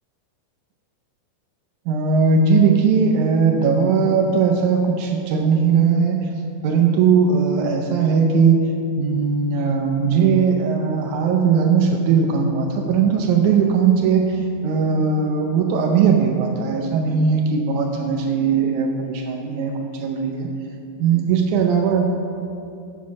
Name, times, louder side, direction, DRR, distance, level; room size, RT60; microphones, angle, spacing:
voice 1, 1.9-6.3 6.6-8.6 9.0-20.5 21.0-22.0, right 5 dB, 85° right, 2 dB, 1.7 m, -19 dB
7.4 x 7.1 x 6.2 m, 2.6 s
omnidirectional pair, 4.2 m